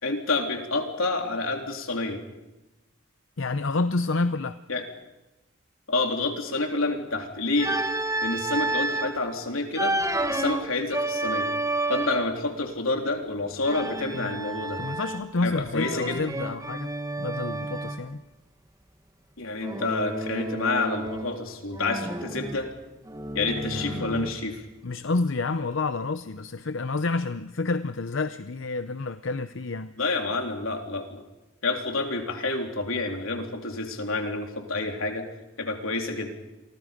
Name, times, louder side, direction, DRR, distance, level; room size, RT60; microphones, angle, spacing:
voice 1, 0.0-2.2 4.7-4.8 5.9-7.7 8.2-10.0 10.3-11.5 11.9-14.8 15.4-16.2 19.4-22.7 23.4-24.5 30.0-31.2 31.6-35.2 35.6-36.3, left 3 dB, 85° left, 3 dB, 3.6 m, -28 dB
voice 2, 3.4-4.6 14.1-14.4 14.8-18.2 23.5-24.3 24.8-29.9, left 3 dB, 65° left, 11 dB, 0.7 m, -29 dB
Organ, 7.6-9.2 9.7-12.4 13.6-15.4 15.8-18.1 19.6-21.4 21.7-24.5, right 2 dB, 15° right, 1.2 m, -30 dB
29.5 x 24.0 x 5.2 m, 1.0 s
head